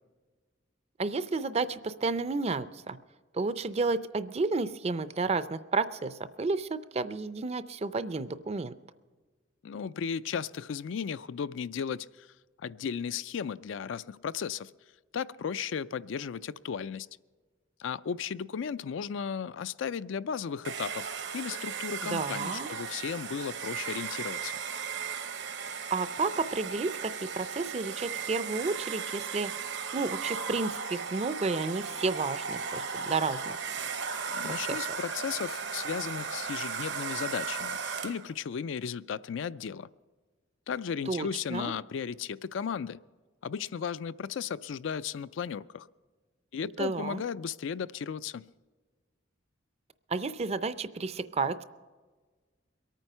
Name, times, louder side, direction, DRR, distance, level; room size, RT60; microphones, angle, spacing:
voice 1, 1.0-3.0 3.3-8.7 22.0-22.7 25.9-33.6 34.4-34.8 41.1-41.7 46.8-47.2 50.1-51.6, right 3 dB, 30° right, 14 dB, 0.5 m, -31 dB
voice 2, 9.6-12.3 12.6-14.7 15.1-17.1 17.8-24.6 34.3-39.9 40.7-43.0 43.4-45.9 46.5-48.4, left 7 dB, 75° left, 16 dB, 0.4 m, -35 dB
Domestic sounds home sounds, 20.6-38.3, right 6 dB, 65° right, 0.9 m, -36 dB
22.5 x 9.1 x 5.5 m, 1.4 s
head